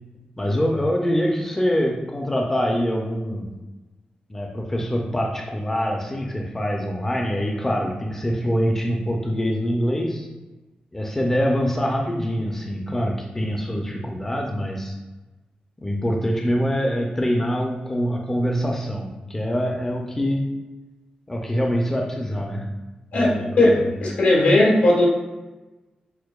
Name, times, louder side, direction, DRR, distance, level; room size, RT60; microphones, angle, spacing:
voice 1, 0.4-3.5 4.3-10.3 10.9-14.9 15.8-20.5 21.3-22.7 23.1-23.9, equal, 15° left, 0 dB, 0.4 m, -24 dB
voice 2, 24.0-25.1, left 2 dB, 85° left, -4 dB, 1.2 m, -16 dB
6.4 x 2.2 x 2.3 m, 1.1 s
wide cardioid pair, 125°, 3 cm